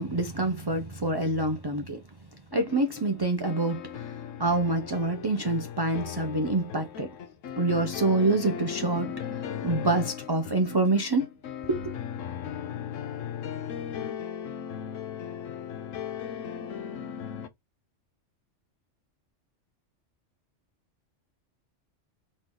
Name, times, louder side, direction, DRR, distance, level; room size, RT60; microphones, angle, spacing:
voice 1, 0.0-2.0 2.5-4.1 4.4-7.1 7.6-11.3 11.6-11.9, right 2 dB, 30° right, 0.4 m, -26 dB
sound 1, 2.5-17.5, left 8 dB, 90° left, 1.1 m, -37 dB
4.2 x 3.1 x 3.7 m
omnidirectional pair, 1.3 m